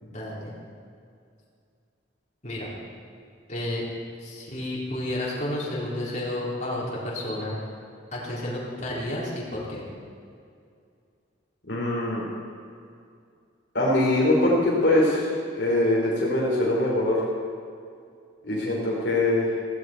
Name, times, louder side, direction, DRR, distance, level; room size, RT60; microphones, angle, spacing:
voice 1, 0.0-0.6 2.4-2.7 3.5-3.8 4.2-7.5 8.1-9.8, left 1 dB, 40° left, -6 dB, 4.1 m, -31 dB
voice 2, 11.7-12.2 13.7-17.2 18.4-19.6, left 1 dB, 65° left, -5 dB, 3.2 m, -23 dB
17.0 x 16.0 x 4.6 m, 2.4 s
head